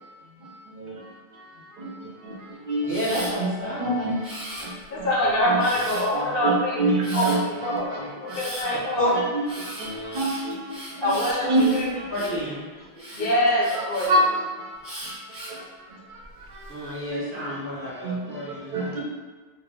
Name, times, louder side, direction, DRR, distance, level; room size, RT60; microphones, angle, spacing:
voice 1, 1.8-2.4 2.7-2.9 3.8-4.3 4.6-5.1 6.4-7.4 8.3-8.4 9.8-11.1 11.5-12.1 14.1-14.2 14.6-14.7 15.0-15.2 16.1-16.2 16.5-16.6 17.1-17.5 18.0-19.0, right 1 dB, 55° right, -3 dB, 0.7 m, -26 dB
voice 2, 2.8-4.1 9.0-9.1 12.1-12.6 16.7-19.0, left 1 dB, 15° left, -9 dB, 0.6 m, -30 dB
Camera, 2.9-3.3 4.2-5.0 5.6-6.2 7.0-7.4 8.3-8.7 9.4-12.4 13.0-14.1 14.8-15.6 16.2-16.7, equal, 20° right, 0.8 m, -38 dB
voice 3, 4.9-9.2 11.0-11.9 13.1-14.1, equal, 65° left, -3 dB, 0.8 m, -25 dB
2.2 x 2.1 x 3.4 m, 1.4 s
omnidirectional pair, 1.1 m